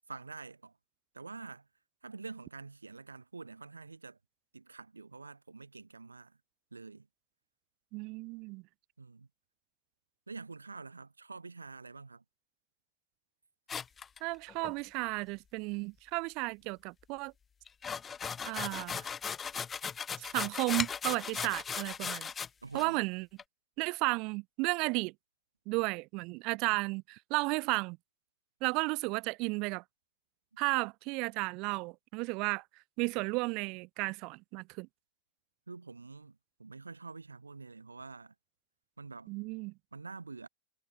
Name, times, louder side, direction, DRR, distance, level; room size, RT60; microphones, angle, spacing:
voice 1, 0.1-0.7 1.1-1.7 2.0-4.2 4.5-6.4 6.7-7.1 9.0-9.3 10.3-12.2 22.6-23.0 35.7-38.3 39.0-39.3 39.9-40.5, right 4 dB, 85° right, 4.4 m, -47 dB
voice 2, 7.9-8.6 14.2-17.3 18.4-19.1 20.2-22.3 22.7-23.3 23.8-25.1 25.7-28.0 28.6-29.8 30.6-32.6 33.0-34.9 39.3-39.7, right 27 dB, 45° right, 1.8 m, -33 dB
sound 1, 13.7-14.7 17.7-22.5 22.8-22.9 23.4-23.5, left 6 dB, 20° left, 1.1 m, -37 dB
figure-of-eight pair, 90°, 0 cm